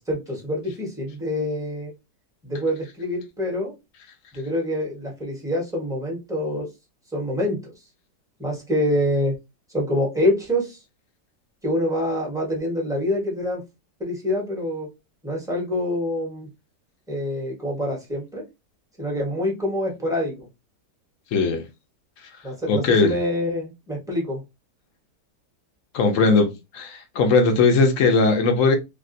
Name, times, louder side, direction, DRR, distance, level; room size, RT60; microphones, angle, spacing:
voice 1, 0.0-1.9 2.4-3.7 4.3-6.7 7.1-7.7 8.4-9.3 9.7-10.8 11.6-13.6 14.0-14.9 15.2-16.5 17.1-18.4 19.0-20.5 22.4-24.4, left 1 dB, 5° right, 0.7 m, -26 dB
voice 2, 21.3-21.6 22.7-23.2 25.9-28.8, left 3 dB, 60° left, 0.9 m, -19 dB
3.5 x 2.3 x 2.5 m
omnidirectional pair, 1.8 m